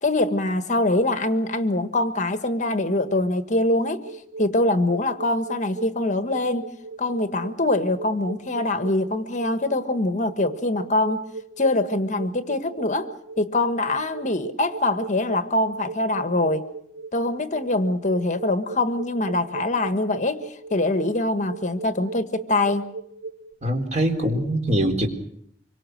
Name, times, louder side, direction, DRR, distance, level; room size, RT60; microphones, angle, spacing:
voice 1, 0.0-4.0 4.4-6.7 7.0-11.2 11.6-13.1 13.4-16.7 17.1-22.9, left 2 dB, 45° left, 9 dB, 1.4 m, -23 dB
sound 1, 3.8-23.5, right 4 dB, 90° right, 2.9 m, -38 dB
voice 2, 23.6-25.1, right 1 dB, 40° right, 4 dB, 4.0 m, -23 dB
25.5 x 24.0 x 6.5 m, 0.71 s
head